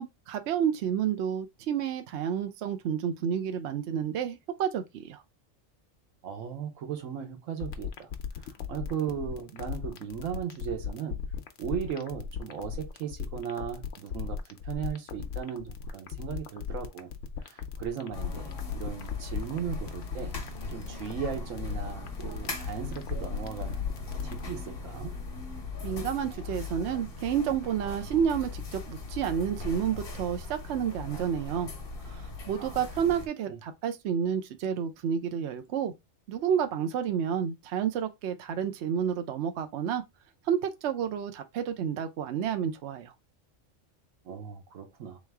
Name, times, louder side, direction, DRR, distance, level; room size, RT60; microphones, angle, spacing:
voice 1, 0.0-5.2 25.8-31.7 32.1-35.9 36.3-40.0 40.5-43.1, right 8 dB, 65° right, 0.9 m, -30 dB
voice 2, 6.2-8.1 8.4-11.2 11.6-14.4 14.6-17.1 17.4-20.3 20.7-23.9 24.2-25.2 32.6-32.8 33.5-33.6 44.2-45.2, right 8 dB, 90° right, 1.3 m, -37 dB
sound 1, 7.6-24.4, left 7 dB, 70° left, 1.0 m, -37 dB
sound 2, 18.1-33.3, left 3 dB, 50° left, 1.2 m, -40 dB
3.5 x 3.2 x 3.4 m
omnidirectional pair, 1.3 m